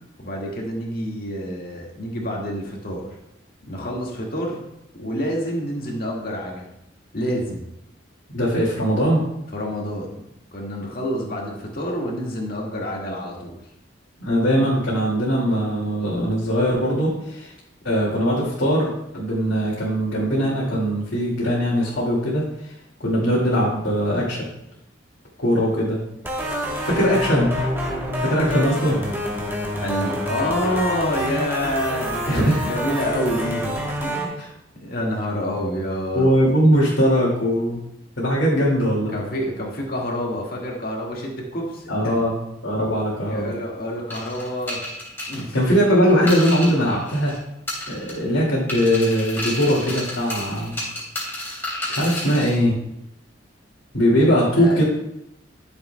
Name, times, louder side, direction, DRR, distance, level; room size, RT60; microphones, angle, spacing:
voice 1, 0.2-3.1 3.7-4.6 4.9-6.7 7.1-7.7 9.5-10.2 10.5-13.6 29.8-34.4 34.8-36.3 39.1-42.2 43.3-44.8 45.3-45.6 54.2-54.8, equal, 50° left, -2 dB, 1.9 m, -28 dB
voice 2, 8.3-9.2 14.2-17.5 17.8-22.7 23.0-24.4 25.4-26.0 26.8-27.5 28.2-29.0 32.3-32.6 34.4-34.5 36.1-37.8 38.2-39.1 41.9-42.4 42.6-43.5 45.5-47.3 47.9-50.8 51.9-52.8 53.9-54.8, equal, 80° left, -7 dB, 2.3 m, -20 dB
sound 1, 26.2-34.3, equal, 10° right, 1.2 m, -27 dB
sound 2, 44.1-47.4 47.7-48.3 48.7-52.6, left 1 dB, 10° left, 2.9 m, -31 dB
12.0 x 7.0 x 2.3 m, 0.83 s
head